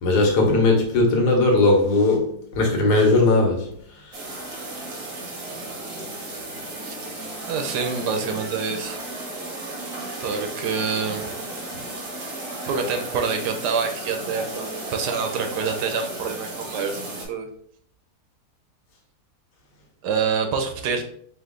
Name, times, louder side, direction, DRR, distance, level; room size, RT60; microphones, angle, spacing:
voice 1, 0.0-3.7, left 2 dB, 75° left, 1 dB, 1.6 m, -18 dB
sound 1, 4.1-17.3, right 2 dB, 65° right, 1.8 m, -34 dB
voice 2, 7.5-9.0 10.2-11.3 11.8-11.9 12.7-17.5 20.0-21.0, right 5 dB, 80° right, 5 dB, 1.3 m, -26 dB
4.6 x 2.5 x 3.7 m, 0.64 s
omnidirectional pair, 1.8 m